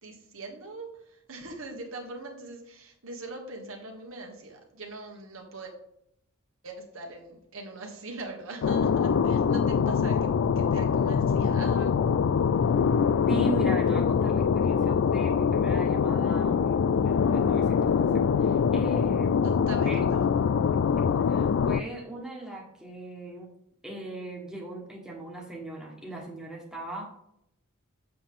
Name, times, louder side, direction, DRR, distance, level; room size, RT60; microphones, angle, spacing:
voice 1, 0.0-5.7 6.6-11.9 19.4-20.2, right 2 dB, 70° right, 2 dB, 1.6 m, -41 dB
sound 1, 8.6-21.8, left 6 dB, 60° left, 0.3 m, -24 dB
voice 2, 13.3-19.5 19.8-20.0 21.0-23.5 23.8-27.2, right 1 dB, 5° right, -2 dB, 1.5 m, -39 dB
7.6 x 7.0 x 3.7 m, 0.74 s
head